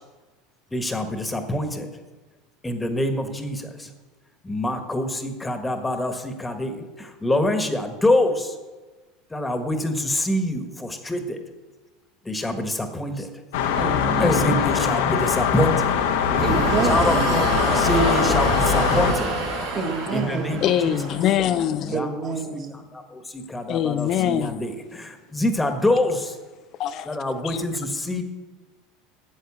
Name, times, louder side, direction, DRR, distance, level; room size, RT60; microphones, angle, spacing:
voice 1, 0.7-1.9 2.6-3.9 4.4-8.5 9.3-11.4 12.2-13.3 14.2-15.9 16.8-19.3 20.1-21.0 21.8-22.3 22.7-26.4 27.0-28.2, left 1 dB, 10° left, 7 dB, 1.4 m, -25 dB
sound 1, 13.5-19.1, left 7 dB, 75° left, 1.1 m, -22 dB
voice 2, 13.8-14.5 16.4-17.4 19.7-20.7 21.9-22.8, right 4 dB, 50° right, 3 dB, 2.0 m, -28 dB
sound 2, 16.3-21.5, right 2 dB, 80° right, 4.4 m, -26 dB
voice 3, 20.6-21.9 23.7-24.6 26.8-27.2 27.4-27.6, left 10 dB, 50° left, 11 dB, 0.5 m, -23 dB
8.6 x 7.7 x 7.2 m, 1.2 s
hypercardioid pair, 85°, 0 cm